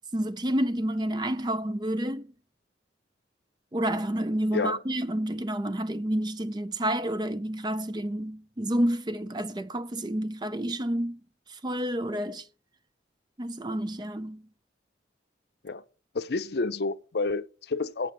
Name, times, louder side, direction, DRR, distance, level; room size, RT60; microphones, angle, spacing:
voice 1, 0.0-2.3 3.7-11.2 11.5-12.5 13.4-14.4, right 1 dB, 25° right, 0.5 m, -29 dB
voice 2, 16.1-18.1, left 3 dB, 60° left, 0.6 m, -29 dB
8.2 x 6.5 x 7.5 m
head